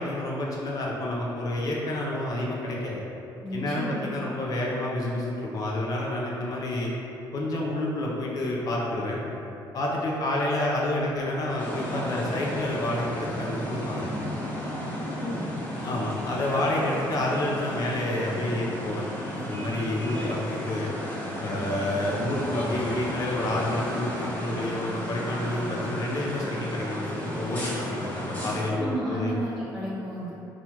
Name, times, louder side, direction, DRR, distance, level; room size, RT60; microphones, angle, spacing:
voice 1, 0.0-3.0 3.5-6.9 7.3-9.2 9.7-14.1 15.8-19.0 19.3-20.9 21.4-29.4, left 1 dB, 50° left, -3 dB, 0.6 m, -29 dB
voice 2, 3.4-4.1 15.2-15.6 28.8-30.3, right 1 dB, 5° right, -12 dB, 0.8 m, -32 dB
sound 1, 11.6-28.7, equal, 20° left, 1.3 m, -34 dB
4.3 x 2.4 x 4.3 m, 2.9 s
cardioid pair, 95°, 8 cm